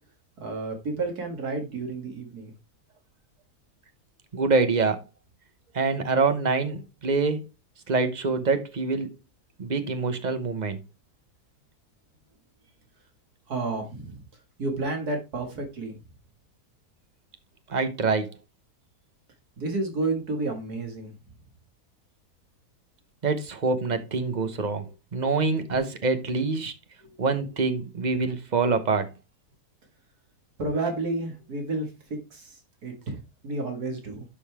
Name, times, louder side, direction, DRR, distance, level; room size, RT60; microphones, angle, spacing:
voice 1, 0.4-2.5 13.5-14.2 14.6-16.0 19.6-21.1 27.0-27.1 30.6-34.2, right 3 dB, 70° right, 2.4 m, -31 dB
voice 2, 4.3-5.0 5.7-7.4 7.9-9.2 9.6-10.8 17.7-18.3 23.2-24.9 25.1-26.7 27.2-29.1, right 4 dB, 35° right, 0.9 m, -25 dB
11.5 x 5.4 x 3.5 m
omnidirectional pair, 1.7 m